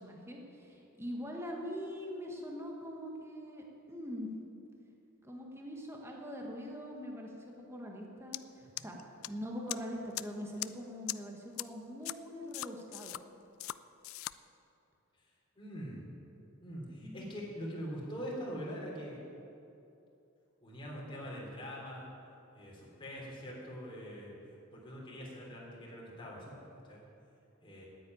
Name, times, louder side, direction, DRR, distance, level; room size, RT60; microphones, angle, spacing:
voice 1, 0.0-4.3 5.2-9.0 9.3-13.2 17.0-17.2, equal, 10° right, 0 dB, 1.3 m, -43 dB
sound 1, 8.3-8.4 8.8-9.3 9.7-9.8 10.1-10.2 10.6-10.7 11.1-11.2 11.6-11.7 12.0-12.1 12.5-13.2 13.6-13.8 14.0-14.3, left 16 dB, 70° left, 0.3 m, -38 dB
voice 2, 15.5-16.1 16.6-19.2 20.6-22.1 22.5-24.4 24.7-27.0 27.6-27.8, equal, 25° left, -4 dB, 3.3 m, -43 dB
9.8 x 9.5 x 9.2 m, 2.8 s
head